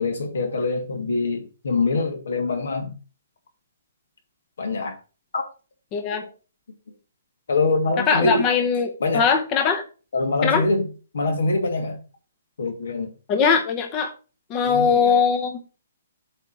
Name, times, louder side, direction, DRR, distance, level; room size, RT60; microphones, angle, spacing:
voice 1, 0.0-2.9 4.6-5.0 5.3-5.5 6.1-6.2 7.5-8.4 9.0-9.2 10.1-10.9 11.1-12.0 12.6-13.1 14.6-15.1, left 3 dB, 75° left, 2.2 m, -24 dB
voice 2, 5.9-6.2 8.0-9.8 10.4-10.6 13.3-14.1 14.5-15.6, left 6 dB, 25° left, 0.8 m, -21 dB
8.0 x 3.6 x 6.0 m
hypercardioid pair, 160°, 0 cm